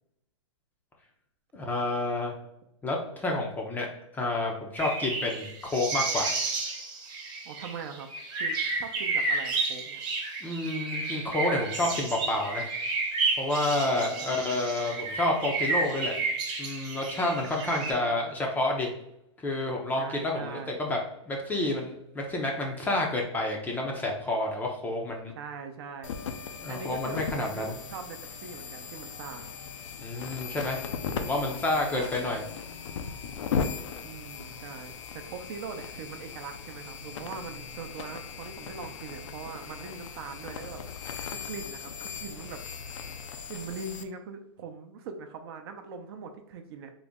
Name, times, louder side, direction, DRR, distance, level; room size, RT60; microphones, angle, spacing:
voice 1, 1.5-2.3 2.8-3.9 4.1-6.3 10.4-12.7 13.4-16.2 16.6-18.9 19.4-21.0 21.3-25.3 26.6-27.8 30.0-32.4, left 2 dB, 10° left, 0 dB, 0.5 m, -29 dB
sound 1, 4.8-17.9, right 3 dB, 25° right, 0.8 m, -31 dB
voice 2, 7.4-8.1 8.4-10.0 13.8-14.6 14.9-15.0 17.5-18.3 20.0-20.9 25.3-26.1 26.7-29.5 31.9-32.4 34.0-40.8 41.3-42.6 43.5-46.9, right 5 dB, 50° right, 6 dB, 0.5 m, -42 dB
sound 2, 26.0-44.0, left 6 dB, 75° left, 0.5 m, -38 dB
3.9 x 2.1 x 3.5 m, 0.80 s
hypercardioid pair, 145°, 16 cm